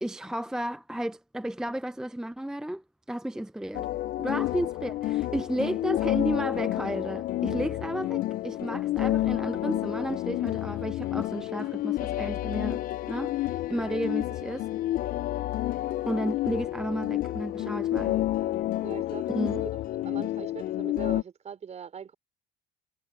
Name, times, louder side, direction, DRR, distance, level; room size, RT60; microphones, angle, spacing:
voice 1, 0.0-3.9 4.2-12.8 13.1-14.7 16.0-18.2 19.3-19.6, right 1 dB, 5° right, 0.4 m, -33 dB
sound 1, 3.7-21.2, left 15 dB, 60° left, 0.4 m, -30 dB
voice 2, 18.8-19.7 20.0-22.1, right 7 dB, 40° right, 4.2 m, -41 dB
cardioid pair, 110°, 17 cm